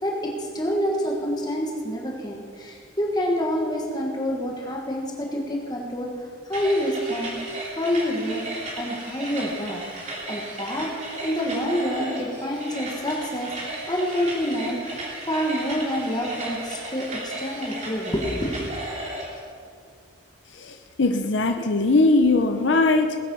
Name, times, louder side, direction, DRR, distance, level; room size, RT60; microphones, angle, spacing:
voice 1, 0.0-6.1 6.4-7.4 7.7-8.5 8.8-9.8 10.3-10.9 11.2-18.6, equal, 20° left, -1 dB, 1.5 m, -27 dB
sound 1, 6.5-19.4, right 2 dB, 35° right, 3.2 m, -35 dB
voice 2, 20.5-23.2, left 2 dB, 60° left, 6 dB, 0.8 m, -20 dB
19.5 x 8.4 x 5.5 m, 2.2 s
head